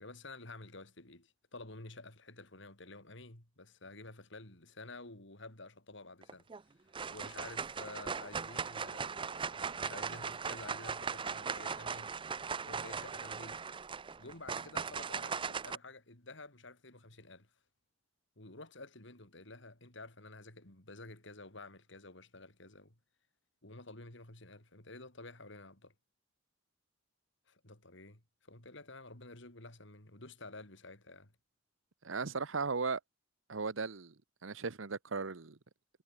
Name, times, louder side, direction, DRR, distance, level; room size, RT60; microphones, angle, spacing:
voice 1, 0.0-6.5 7.1-12.1 12.6-13.6 14.2-17.5 18.4-23.0 23.6-25.9 27.5-31.3, left 2 dB, 70° left, 4.5 m, -51 dB
sound 1, 6.2-6.6 6.9-15.7, right 5 dB, 25° right, 0.5 m, -39 dB
voice 2, 32.0-33.0 33.5-34.1 34.4-35.6, right 4 dB, 80° right, 1.1 m, -36 dB
head